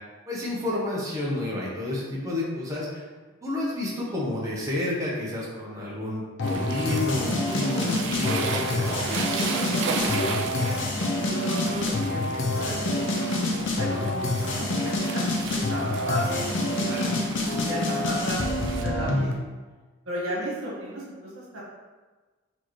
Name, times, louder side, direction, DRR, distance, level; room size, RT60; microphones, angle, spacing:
voice 1, 0.3-3.0 3.4-8.9 16.9-17.1, left 2 dB, 15° right, -6 dB, 0.8 m, -30 dB
sound 1, 6.4-19.3, left 2 dB, 65° left, 0.6 m, -27 dB
sound 2, 6.4-18.8, right 4 dB, 65° right, 0.4 m, -35 dB
voice 2, 10.1-13.2 13.7-14.3 14.6-17.2 17.5-18.5 18.8-19.3 20.0-21.6, equal, 90° right, -5 dB, 1.3 m, -34 dB
4.4 x 2.9 x 3.1 m, 1.3 s
head